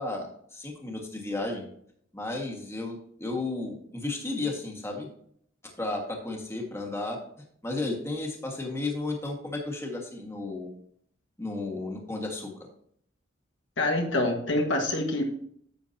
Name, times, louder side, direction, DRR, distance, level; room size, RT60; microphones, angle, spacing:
voice 1, 0.0-1.6 2.1-5.1 5.8-7.2 7.6-10.7 11.4-12.5, left 2 dB, 15° left, 0 dB, 1.7 m, -33 dB
voice 2, 13.8-15.3, left 1 dB, 70° left, 2 dB, 1.7 m, -26 dB
10.5 x 7.3 x 2.8 m, 0.64 s
head